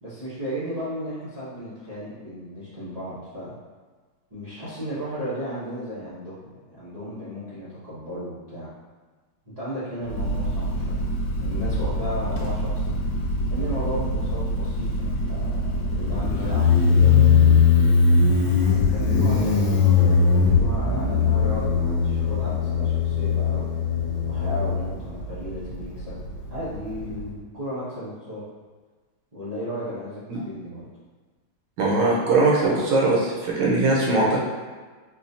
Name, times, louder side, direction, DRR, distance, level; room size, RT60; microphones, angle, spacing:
voice 1, 0.0-3.5 4.3-8.7 9.4-11.0 11.4-12.9 13.5-17.6 18.7-23.6 24.3-26.2 26.5-28.4 29.3-30.9, equal, 45° right, -13 dB, 0.4 m, -34 dB
Motorcycle, 10.1-27.3, left 4 dB, 75° left, 1.2 m, -21 dB
voice 2, 31.8-34.4, right 2 dB, 80° right, -4 dB, 1.6 m, -20 dB
4.3 x 2.4 x 2.7 m, 1.4 s
omnidirectional pair, 2.3 m